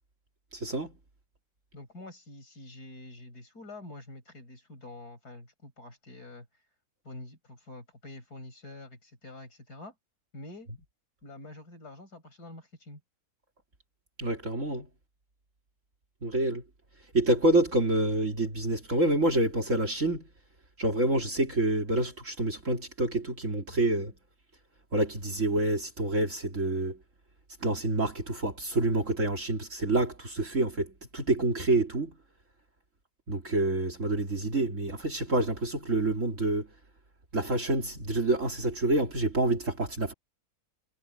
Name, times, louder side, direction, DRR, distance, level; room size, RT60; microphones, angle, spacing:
voice 1, 0.5-0.9 14.2-14.9 16.2-16.6 17.1-20.2 20.8-24.1 24.9-27.0 27.6-32.1 33.3-36.7 37.3-40.1, right 2 dB, 55° right, 3.0 m, -27 dB
voice 2, 1.7-6.5 7.0-9.9 10.3-10.7 11.2-13.0, left 2 dB, 85° left, 6.6 m, -46 dB
omnidirectional pair, 1.6 m